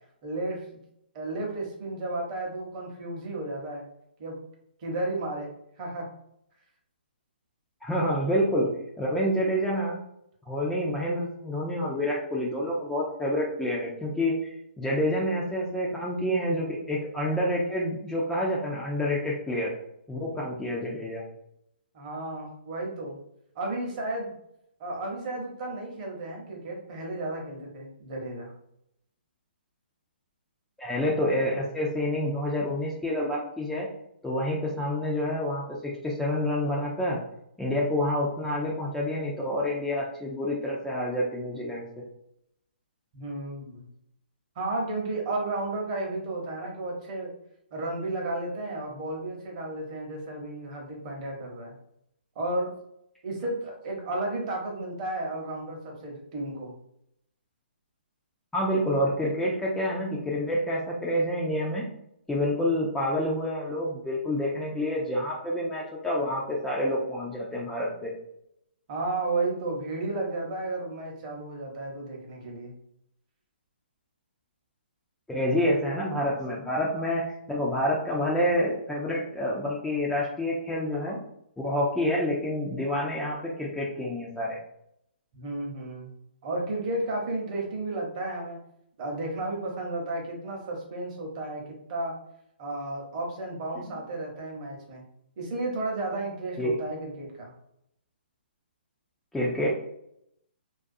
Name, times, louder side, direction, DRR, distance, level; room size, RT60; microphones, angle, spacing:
voice 1, 0.2-0.8 1.1-3.8 4.2-4.4 4.8-5.5 5.8-6.1 20.3-20.4 21.9-23.2 23.5-24.4 24.8-28.5 43.1-43.8 44.6-47.3 47.7-51.7 52.4-52.8 53.2-56.7 68.9-72.7 85.3-86.1 86.4-88.6 89.0-92.2 92.6-95.0 95.4-97.5, right 2 dB, 35° right, 0 dB, 0.8 m, -33 dB
voice 2, 7.8-8.7 9.0-10.0 10.5-19.7 20.1-21.2 30.8-33.9 34.2-37.2 37.6-41.8 58.5-61.8 62.3-68.1 75.3-77.2 77.5-81.2 81.6-84.6 96.6-96.7 99.3-99.7, left 1 dB, 5° left, -6 dB, 0.3 m, -28 dB
2.4 x 2.2 x 2.5 m, 0.76 s
hypercardioid pair, 145°, 6 cm